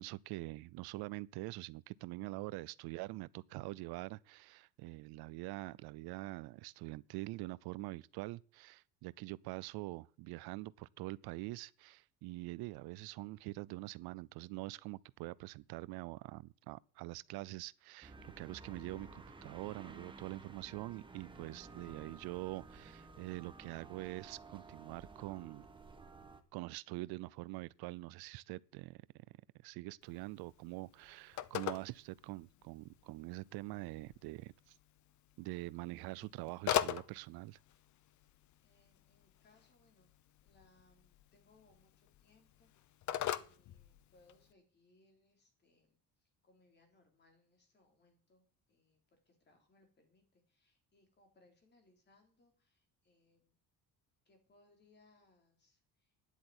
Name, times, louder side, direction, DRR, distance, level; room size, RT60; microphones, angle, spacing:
voice 1, 0.0-25.7 26.5-29.2 29.6-34.8 35.4-37.6, right 21 dB, 70° right, 0.6 m, -45 dB
sound 1, 18.0-26.4, right 3 dB, 10° right, 1.3 m, -54 dB
Telephone, 30.0-44.5, left 12 dB, 50° left, 0.9 m, -43 dB
voice 2, 38.6-40.1 40.4-42.7 43.3-46.0 46.4-48.4 48.7-49.0 49.3-53.5 54.3-55.8, left 2 dB, 25° left, 3.8 m, -70 dB
10.0 x 8.3 x 9.6 m
cardioid pair, 155°, 39 cm